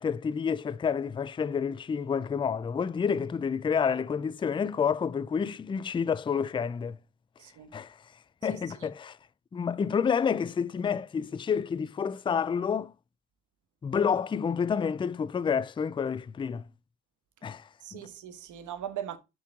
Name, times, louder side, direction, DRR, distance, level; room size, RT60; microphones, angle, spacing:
voice 1, 0.0-7.0 7.7-8.0 8.4-9.2 9.5-12.9 13.8-16.7 17.4-18.0, left 6 dB, 15° left, 0.3 m, -29 dB
voice 2, 7.4-7.7 8.4-8.9 17.8-19.2, right 10 dB, 75° right, 1.2 m, -40 dB
7.1 x 4.7 x 3.5 m
cardioid pair, 90°, 30 cm